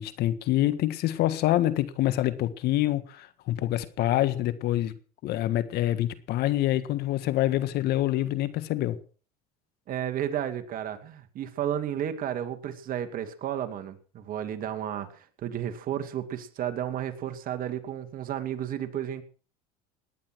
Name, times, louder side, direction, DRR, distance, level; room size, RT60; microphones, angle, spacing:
voice 1, 0.0-4.9 5.2-9.0, left 14 dB, 60° left, 1.7 m, -26 dB
voice 2, 9.9-19.2, right 10 dB, 50° right, 2.4 m, -32 dB
19.0 x 10.5 x 6.2 m
supercardioid pair, 100°, 19 cm